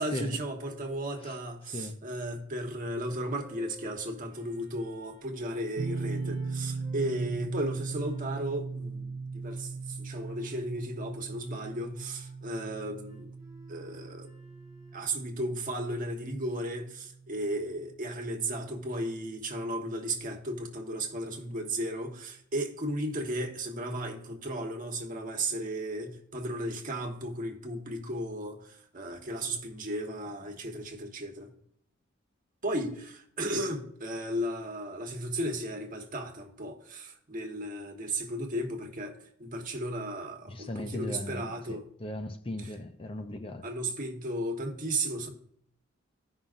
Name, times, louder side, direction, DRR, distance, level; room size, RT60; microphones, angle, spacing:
voice 1, 0.0-13.3 13.7-14.3 14.9-31.5 32.6-41.8 43.6-45.3, right 1 dB, 45° right, 1.3 m, -35 dB
sound 1, 3.0-7.3 7.8-8.5 10.1-10.7 11.3-15.3, right 2 dB, 20° right, 2.3 m, -56 dB
sound 2, 5.8-18.7, right 4 dB, 75° right, 0.6 m, -39 dB
voice 2, 40.5-43.7, left 1 dB, 30° left, 0.5 m, -38 dB
15.0 x 5.5 x 2.5 m
head